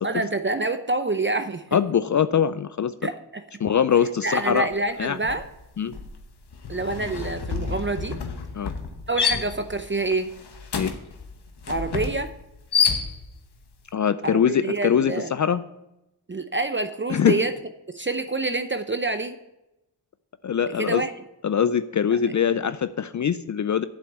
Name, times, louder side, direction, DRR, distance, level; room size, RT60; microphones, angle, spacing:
voice 1, 0.0-1.6 3.0-3.4 4.2-5.5 6.7-8.2 9.1-10.3 11.7-12.3 14.2-15.3 16.3-17.5 17.9-19.4 20.8-21.1, right 2 dB, 30° right, 9 dB, 0.6 m, -27 dB
voice 2, 1.7-3.1 3.6-4.7 5.0-5.2 5.8-5.9 8.5-8.7 10.7-10.9 13.9-15.6 17.1-17.4 20.4-21.0 21.4-23.8, left 8 dB, 45° left, 13 dB, 0.4 m, -22 dB
sound 1, 4.5-4.8 5.1-13.5, left 6 dB, 75° left, 1.1 m, -29 dB
7.8 x 6.2 x 8.0 m, 0.91 s
cardioid pair, 45°, 40 cm